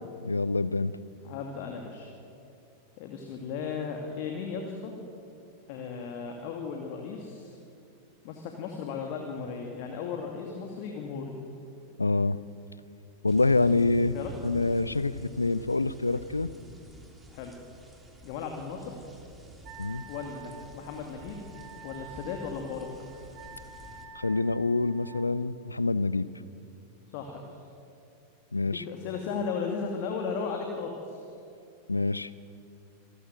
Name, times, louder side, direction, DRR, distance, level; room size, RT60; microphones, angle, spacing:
voice 1, 0.2-0.9 12.0-12.4 13.2-16.5 19.8-20.0 24.1-26.2 28.5-28.8 31.9-32.3, left 3 dB, 80° left, 17 dB, 0.6 m, -26 dB
voice 2, 1.2-2.1 3.0-4.9 5.7-7.6 8.2-11.3 14.1-14.3 17.3-17.5 18.2-19.0 20.1-21.4 21.8-22.9 27.1-27.5 28.6-31.2, left 5 dB, 45° left, 3 dB, 2.4 m, -36 dB
sound 1, 13.3-24.1, right 1 dB, 10° right, 3.0 m, -49 dB
Wind instrument woodwind instrument, 19.6-25.3, right 5 dB, 40° right, 2.1 m, -48 dB
26.5 x 13.5 x 9.1 m, 2.6 s
figure-of-eight pair, 90°, 0 cm